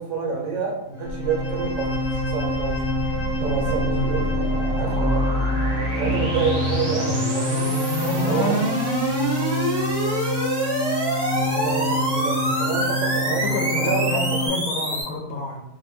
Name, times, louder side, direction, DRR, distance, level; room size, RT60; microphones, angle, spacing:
voice 1, 0.0-2.9 3.4-5.3 5.9-7.7 8.1-9.3 11.3-13.5 13.8-14.4, right 4 dB, 65° right, -1 dB, 1.0 m, -28 dB
sound 1, 0.9-14.5, equal, 55° left, 1.2 m, -27 dB
sound 2, 1.7-15.0, right 1 dB, 35° right, 0.4 m, -26 dB
voice 2, 8.0-8.7 13.4-15.7, left 2 dB, 80° left, 1 dB, 1.1 m, -29 dB
2.7 x 2.0 x 3.0 m, 0.81 s
omnidirectional pair, 1.5 m